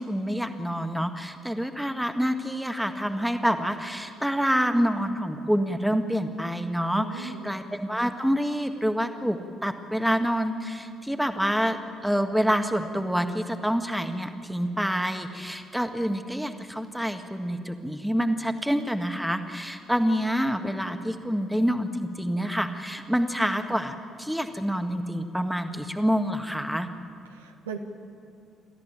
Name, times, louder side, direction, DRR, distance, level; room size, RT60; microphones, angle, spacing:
voice 1, 0.0-26.9, equal, ahead, 7 dB, 1.8 m, -27 dB
voice 2, 6.9-7.5 27.3-27.8, right 7 dB, 75° right, 4 dB, 1.3 m, -38 dB
28.5 x 14.0 x 9.0 m, 2.4 s
figure-of-eight pair, 45°, 0 cm